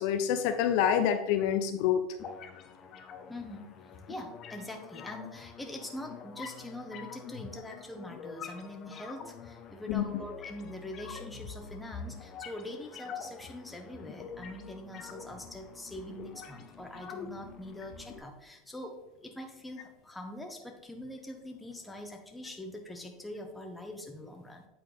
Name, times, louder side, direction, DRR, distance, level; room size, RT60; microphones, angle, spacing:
voice 1, 0.0-2.0 9.9-10.0, left 9 dB, 70° left, 8 dB, 0.6 m, -27 dB
sound 1, 2.2-18.2, left 6 dB, 45° left, 0.8 m, -46 dB
voice 2, 3.3-3.7 4.1-24.7, left 1 dB, 10° left, 3 dB, 1.2 m, -43 dB
8.4 x 4.3 x 3.5 m, 0.91 s
supercardioid pair, 115°, 0 cm